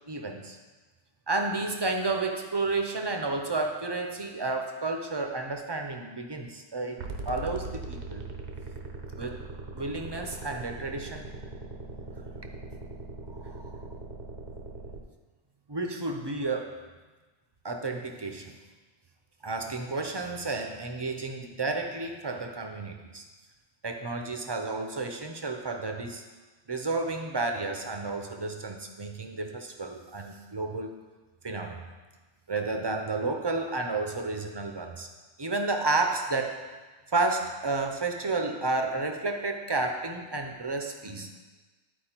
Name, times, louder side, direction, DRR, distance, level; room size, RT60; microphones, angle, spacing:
voice 1, 0.1-0.6 1.3-8.3 9.2-9.4 9.7-11.3 13.3-13.8 15.7-16.8 17.6-18.5 19.4-23.2 23.8-26.2 26.7-31.0 31.4-31.9 32.5-35.1 35.4-36.6 37.1-41.3, right 3 dB, 30° right, 4 dB, 0.6 m, -31 dB
sound 1, 7.0-15.0, right 3 dB, 75° right, 1.0 m, -40 dB
11.0 x 4.5 x 4.4 m, 1.3 s
omnidirectional pair, 1.2 m